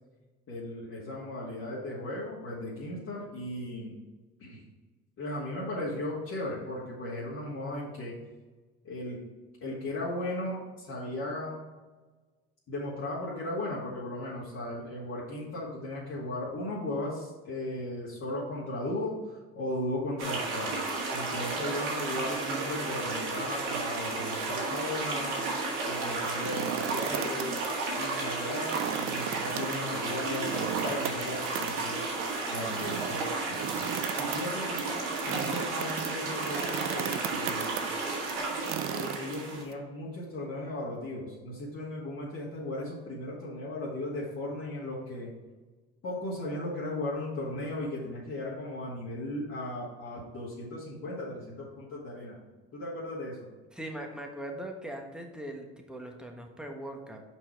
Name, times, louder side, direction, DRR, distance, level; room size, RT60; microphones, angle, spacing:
voice 1, 0.5-3.9 4.4-4.6 5.2-8.1 8.8-9.2 9.6-11.6 12.7-20.7 21.1-25.4 25.8-27.6 27.9-32.0 32.5-34.9 35.2-37.8 38.9-45.3 46.0-52.4 52.7-53.5, left 1 dB, 45° left, -8 dB, 2.2 m, -36 dB
sound 1, 20.2-39.6, right 3 dB, 85° right, 1.8 m, -33 dB
sound 2, 26.2-27.7 28.0-28.1 28.5-39.7, right 11 dB, 40° right, 0.4 m, -37 dB
voice 2, 53.7-57.2, right 1 dB, ahead, 2 dB, 1.3 m, -40 dB
5.7 x 4.8 x 4.7 m, 1.3 s
hypercardioid pair, 70°, 34 cm